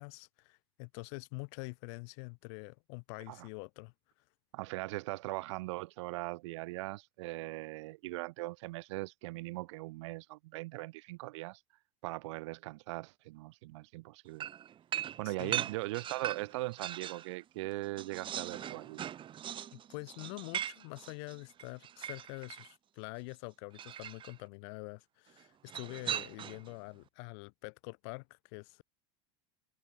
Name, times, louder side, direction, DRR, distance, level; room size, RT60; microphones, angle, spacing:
voice 1, 0.0-3.9 15.2-15.6 19.7-28.8, left 36 dB, 65° left, 4.1 m, -46 dB
voice 2, 4.5-11.6 12.0-14.5 15.2-19.0, right 21 dB, 70° right, 1.0 m, -40 dB
sound 1, 14.4-17.3 17.6-22.7 23.7-24.3 25.7-26.7, right 10 dB, 35° right, 2.0 m, -40 dB
supercardioid pair, 115°, 16 cm